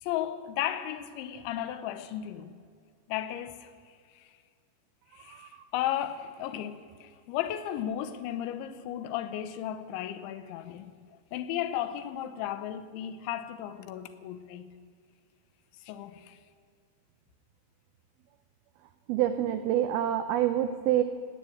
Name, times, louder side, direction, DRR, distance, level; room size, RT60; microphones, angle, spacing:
voice 1, 0.0-2.5 3.1-3.7 4.1-4.3 5.2-11.0 11.3-14.7 15.8-16.4, left 11 dB, 90° left, 3.2 m, -35 dB
voice 2, 19.1-21.0, right 11 dB, 90° right, 2.1 m, -27 dB
17.5 x 9.1 x 8.6 m
omnidirectional pair, 5.2 m